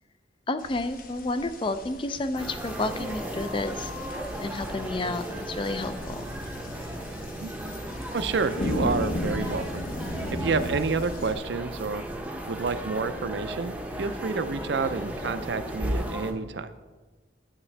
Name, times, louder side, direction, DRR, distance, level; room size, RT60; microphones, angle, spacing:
voice 1, 0.5-3.9 4.4-6.2, left 2 dB, 30° left, 10 dB, 0.4 m, -30 dB
sound 1, 0.6-11.4, left 1 dB, 50° left, 0.8 m, -36 dB
sound 2, 2.4-16.3, right 1 dB, 10° right, 0.7 m, -35 dB
voice 2, 8.1-9.8 10.3-12.0 12.5-16.7, right 4 dB, 75° right, 12 dB, 0.5 m, -29 dB
9.5 x 8.0 x 3.3 m, 1.3 s
head